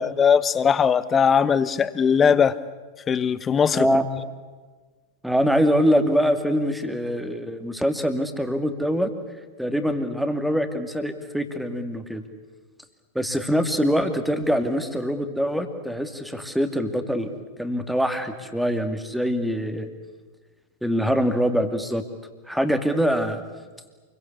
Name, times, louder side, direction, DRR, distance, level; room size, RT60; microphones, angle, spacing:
voice 1, 0.0-2.6 3.1-3.9, left 7 dB, 20° left, 17 dB, 1.1 m, -19 dB
voice 2, 3.7-4.1 5.2-9.1 9.6-12.2 13.1-19.9 20.8-22.0 22.5-23.4, equal, ahead, 7 dB, 2.5 m, -24 dB
28.5 x 23.0 x 8.3 m, 1.4 s
figure-of-eight pair, 90°, 0 cm